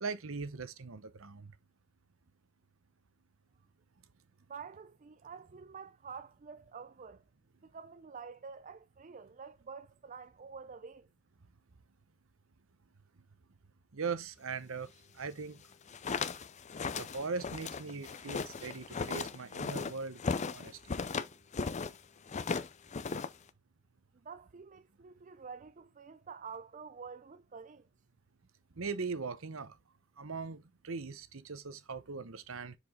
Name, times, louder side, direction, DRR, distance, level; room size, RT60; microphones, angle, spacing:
voice 1, 0.0-1.5 13.9-14.9 15.2-15.6 17.0-20.8 28.8-29.8 30.2-32.8, right 4 dB, 65° right, 0.9 m, -40 dB
voice 2, 4.5-7.2 7.6-11.1 24.2-27.9, right 5 dB, 35° right, 0.5 m, -48 dB
sound 1, 15.7-22.0 22.3-23.5, left 5 dB, 35° left, 0.5 m, -36 dB
6.7 x 5.0 x 3.7 m
head